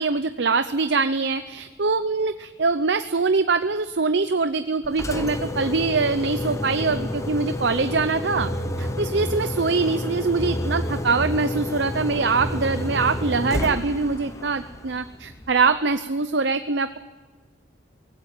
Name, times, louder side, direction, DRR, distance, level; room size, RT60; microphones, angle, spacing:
voice 1, 0.0-8.5 8.8-16.9, right 4 dB, 70° right, 10 dB, 0.7 m, -23 dB
Engine, 4.8-15.8, left 1 dB, 15° left, 1.0 m, -31 dB
sound 1, 6.4-14.3, right 1 dB, 70° left, 6.2 m, -34 dB
19.0 x 16.0 x 9.0 m, 1.4 s
head